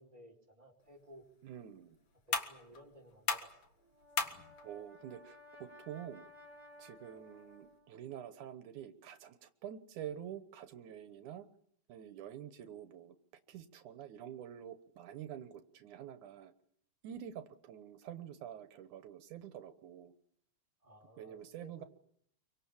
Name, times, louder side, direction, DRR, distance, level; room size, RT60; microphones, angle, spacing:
voice 1, 0.0-1.2 2.3-3.6 20.8-21.9, equal, 10° right, -1 dB, 4.3 m, -57 dB
sound 1, 0.8-7.8, left 5 dB, 50° left, 2.6 m, -43 dB
voice 2, 1.4-2.0 4.6-6.3 6.8-11.5 11.9-13.1 13.5-16.5 17.0-20.1 21.2-21.8, right 10 dB, 85° right, 10 dB, 2.6 m, -47 dB
Brass instrument, 3.8-8.0, left 1 dB, 35° right, 4.4 m, -57 dB
26.0 x 24.0 x 7.2 m, 0.71 s
omnidirectional pair, 3.4 m